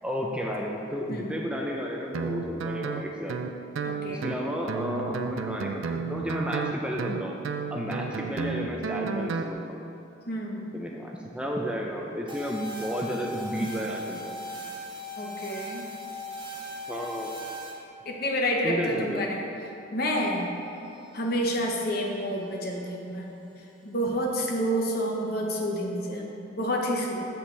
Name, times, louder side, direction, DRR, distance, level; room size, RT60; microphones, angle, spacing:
voice 1, 0.0-3.5 4.1-7.4 7.7-9.8 10.7-14.4 16.9-17.4 18.6-19.3, equal, 5° right, -1 dB, 0.4 m, -32 dB
Guitar, 2.1-9.5, right 5 dB, 90° right, 0.4 m, -32 dB
voice 2, 3.8-4.3 10.3-10.7 15.2-15.8 18.0-19.4 19.9-20.5 21.1-23.4 23.8-27.3, equal, 50° left, 0 dB, 0.9 m, -29 dB
sound 1, 12.3-17.7 20.8-23.0, left 1 dB, 25° right, 0.8 m, -39 dB
7.6 x 7.0 x 3.3 m, 2.8 s
head